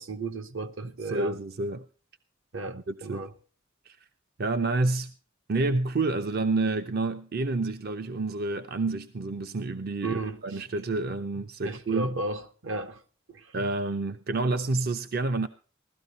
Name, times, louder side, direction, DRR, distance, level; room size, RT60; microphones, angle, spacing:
voice 1, 0.0-1.4 2.5-3.3 10.0-10.6 11.6-13.0 13.3-13.4, right 2 dB, 70° right, 1.0 m, -34 dB
voice 2, 0.8-1.8 2.7-3.2 3.9-4.0 4.4-5.1 5.5-12.2 13.5-15.5, right 3 dB, 50° right, 0.5 m, -29 dB
16.0 x 12.5 x 4.0 m
head